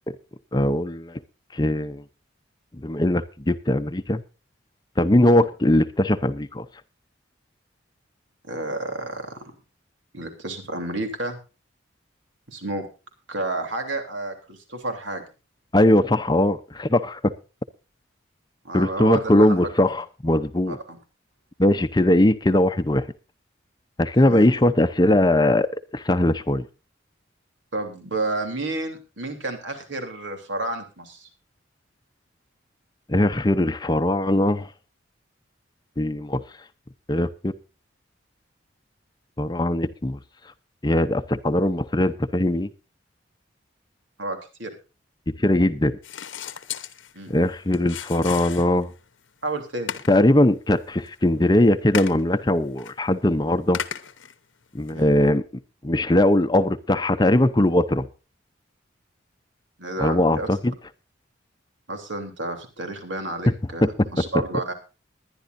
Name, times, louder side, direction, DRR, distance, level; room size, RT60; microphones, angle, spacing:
voice 1, 0.5-1.2 1.5-2.0 2.8-4.2 5.0-6.6 15.7-17.3 18.7-20.8 21.6-23.1 24.0-25.7 25.9-26.7 33.1-34.7 36.0-36.4 37.1-37.5 39.4-40.2 40.8-42.7 45.4-46.0 47.3-48.9 50.1-53.8 54.7-55.4 55.8-58.1 60.0-60.7 63.8-63.9, left 1 dB, 20° left, 0.6 m, -20 dB
voice 2, 8.4-9.5 10.1-11.4 12.5-12.9 13.3-15.2 18.6-19.7 20.7-21.0 24.2-24.5 27.7-31.3 44.2-44.7 47.1-47.4 49.4-49.9 54.9-55.1 59.8-60.5 61.9-64.7, right 2 dB, 80° right, 3.2 m, -31 dB
sound 1, 46.0-49.0 49.4-49.5 49.9-50.4 50.8-51.1 51.9-52.2 52.8-52.9 53.7-54.3 54.9-55.0, left 8 dB, 85° left, 1.0 m, -35 dB
21.0 x 11.0 x 2.6 m
head